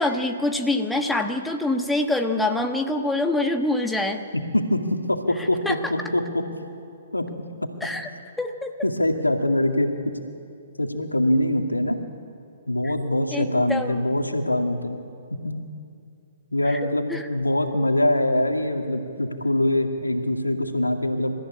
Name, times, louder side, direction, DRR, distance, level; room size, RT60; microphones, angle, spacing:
voice 1, 0.0-4.2 5.4-5.9 7.8-8.1 8.4-8.7 12.8-12.9 13.3-14.0 16.7-16.8 17.1-17.3, left 2 dB, 5° left, 5 dB, 1.3 m, -25 dB
voice 2, 4.3-6.4 7.1-7.3 8.8-10.1 10.8-12.0 12.7-15.0 15.4-15.6 16.5-21.3, left 1 dB, 90° left, 5 dB, 2.2 m, -23 dB
27.5 x 14.5 x 9.9 m, 2.5 s
figure-of-eight pair, 125°, 0 cm